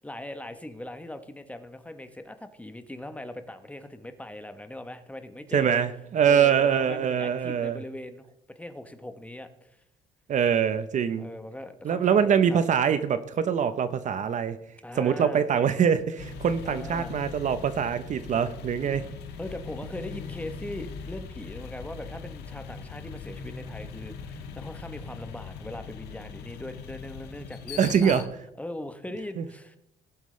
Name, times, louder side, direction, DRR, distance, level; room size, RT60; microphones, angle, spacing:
voice 1, 0.0-5.8 6.2-9.8 11.2-12.6 14.8-15.5 16.6-17.2 18.8-28.3 28.6-29.8, left 1 dB, 10° left, 9 dB, 1.0 m, -40 dB
voice 2, 5.5-7.8 10.3-11.3 11.8-14.6 15.0-19.0 27.8-28.2 29.4-29.5, right 7 dB, 45° right, 12 dB, 0.8 m, -24 dB
sound 1, 16.2-28.2, left 5 dB, 85° left, 1.3 m, -40 dB
19.0 x 7.4 x 3.3 m, 0.77 s
cardioid pair, 110°, 17 cm